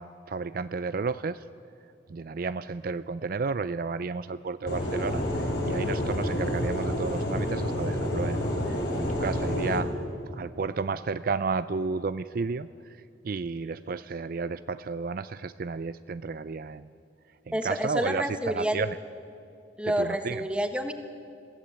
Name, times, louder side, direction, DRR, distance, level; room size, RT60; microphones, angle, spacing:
voice 1, 0.0-1.4 2.1-5.2 5.7-9.9 10.3-12.7 13.2-16.9 17.5-18.9 20.0-20.4, right 4 dB, 50° right, 14 dB, 0.4 m, -32 dB
sound 1, 4.7-9.8, left 1 dB, 65° left, 4.1 m, -29 dB
voice 2, 17.5-18.8 19.8-20.9, equal, 5° right, 7 dB, 1.3 m, -28 dB
22.5 x 15.5 x 8.2 m, 2.7 s
head